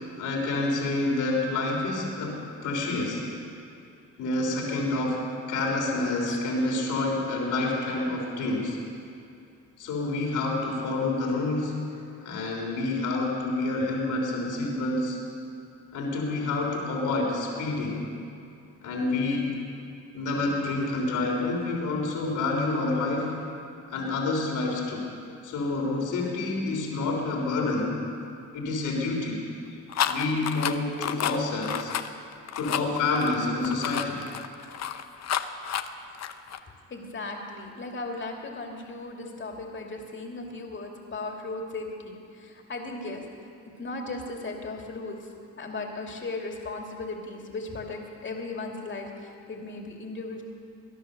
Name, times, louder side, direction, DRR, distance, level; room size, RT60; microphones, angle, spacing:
voice 1, 0.2-3.3 4.2-8.8 9.8-15.2 15.9-18.1 18.8-19.6 20.1-23.4 23.9-25.1 25.4-28.0 28.5-29.4 30.1-31.9 32.6-34.3, left 2 dB, 80° left, -1 dB, 3.5 m, -28 dB
sound 1, 29.9-36.6, left 9 dB, 60° left, 0.8 m, -30 dB
voice 2, 36.9-43.5 43.8-45.3 45.6-50.4, left 3 dB, 40° left, 1 dB, 2.6 m, -37 dB
19.5 x 10.5 x 6.8 m, 2.5 s
cardioid pair, 90°, 30 cm